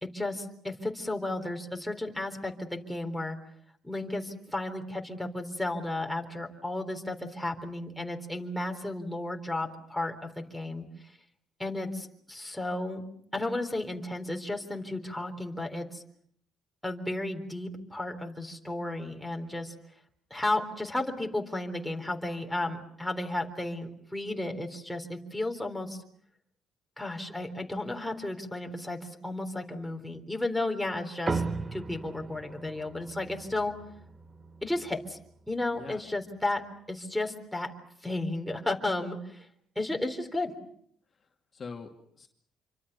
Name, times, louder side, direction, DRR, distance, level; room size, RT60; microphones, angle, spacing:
voice 1, 0.0-3.4 3.8-10.9 11.6-13.0 13.3-16.0 16.8-19.7 20.3-26.0 27.0-31.4 31.7-33.7 34.6-35.2 35.5-36.6 36.9-37.7 38.0-39.5 39.8-40.5, left 2 dB, 5° left, 3 dB, 3.7 m, -33 dB
sound 1, 31.3-36.0, right 4 dB, 25° right, 1.1 m, -37 dB
voice 2, 41.2-42.3, left 5 dB, 35° left, 2 dB, 2.5 m, -44 dB
27.5 x 25.0 x 6.8 m, 0.66 s
cardioid pair, 105°, 0 cm